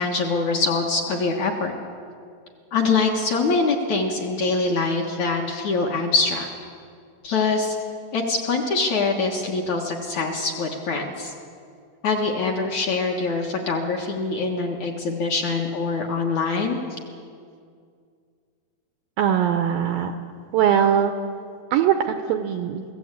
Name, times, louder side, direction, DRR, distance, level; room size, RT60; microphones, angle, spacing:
voice 1, 0.0-1.7 2.7-6.5 7.2-7.8 8.1-11.3 12.0-16.8, left 3 dB, 55° left, 1 dB, 2.2 m, -24 dB
voice 2, 19.2-20.1 20.5-21.1 21.7-22.8, right 9 dB, 80° right, 6 dB, 2.1 m, -21 dB
22.5 x 16.5 x 8.4 m, 2.2 s
omnidirectional pair, 4.9 m